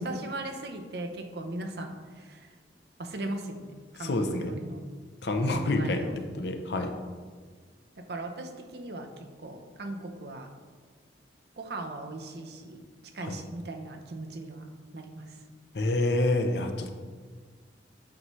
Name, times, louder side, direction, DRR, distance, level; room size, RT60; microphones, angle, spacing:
voice 1, 0.0-2.5 3.0-4.9 5.5-6.2 8.0-10.5 11.6-12.8 13.1-14.7 14.9-15.3, right 2 dB, 65° right, 5 dB, 0.7 m, -39 dB
voice 2, 4.0-4.5 5.2-6.0 6.3-7.0 13.2-13.4 15.7-16.9, left 2 dB, 70° left, 5 dB, 0.7 m, -27 dB
8.6 x 5.4 x 3.1 m, 1.6 s
head